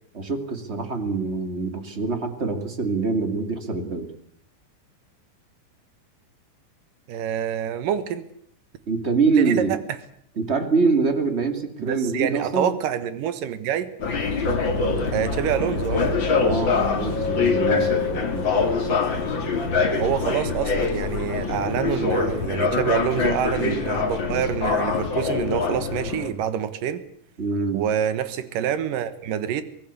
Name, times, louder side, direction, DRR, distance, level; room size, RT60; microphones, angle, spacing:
voice 1, 0.1-4.1 8.9-9.8 10.4-12.7 16.4-18.7 27.4-27.8, right 4 dB, 20° right, 8 dB, 2.3 m, -25 dB
voice 2, 7.1-8.2 9.4-10.0 11.8-13.9 15.1-16.1 20.0-27.0 27.7-29.6, right 9 dB, 80° right, 13 dB, 3.1 m, -26 dB
sound 1, 14.0-26.3, left 4 dB, 35° left, 3.0 m, -24 dB
24.5 x 19.0 x 8.4 m, 0.65 s
omnidirectional pair, 3.8 m